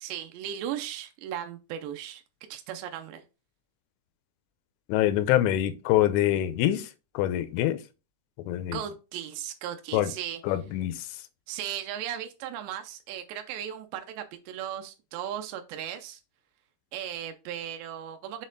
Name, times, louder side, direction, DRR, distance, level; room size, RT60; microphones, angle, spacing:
voice 1, 0.0-2.2 2.5-3.2 8.7-10.4 11.5-16.2 16.9-18.5, right 10 dB, 85° right, 2.4 m, -36 dB
voice 2, 4.9-6.9 7.1-7.8 8.5-8.8 9.9-10.1 10.4-11.0, left 13 dB, 80° left, 3.1 m, -25 dB
7.1 x 4.2 x 3.9 m
omnidirectional pair, 5.9 m